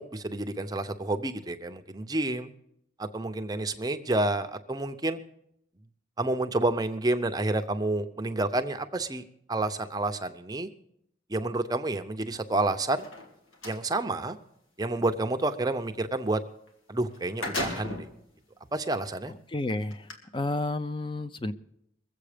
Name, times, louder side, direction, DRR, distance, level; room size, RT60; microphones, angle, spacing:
voice 1, 0.0-2.5 3.0-5.2 6.2-9.2 9.5-10.7 11.3-13.1 13.6-14.4 14.8-16.4 16.9-18.1 18.7-19.3, right 2 dB, 20° right, 7 dB, 0.6 m, -29 dB
sound 1, 12.9-13.8 16.7-16.8 17.1-18.2 18.9-19.0 19.9-20.1, left 2 dB, 90° left, 2.3 m, -35 dB
voice 2, 19.5-21.5, left 2 dB, 25° left, 12 dB, 0.6 m, -31 dB
22.0 x 7.9 x 5.0 m, 0.74 s
head